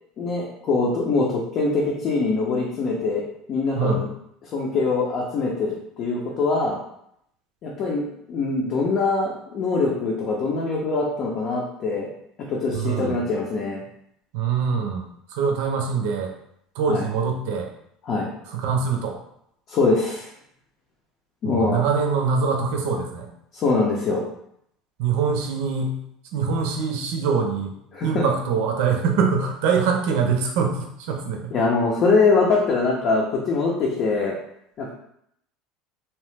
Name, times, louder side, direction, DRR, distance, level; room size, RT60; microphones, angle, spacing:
voice 1, 0.2-4.1 4.5-6.8 7.6-12.1 12.5-13.8 16.9-17.1 18.0-18.3 19.7-20.3 21.4-21.8 23.5-24.2 27.9-28.2 31.5-34.4 34.8-34.9, left 3 dB, 50° left, -3 dB, 0.6 m, -23 dB
voice 2, 3.7-4.1 12.7-13.2 14.3-15.0 15.3-16.3 16.7-17.7 18.5-19.2 21.4-23.3 25.0-26.0 26.3-27.7 28.0-31.5, right 5 dB, 75° right, 2 dB, 0.5 m, -24 dB
2.8 x 2.0 x 3.3 m, 0.74 s
supercardioid pair, 110°, 0 cm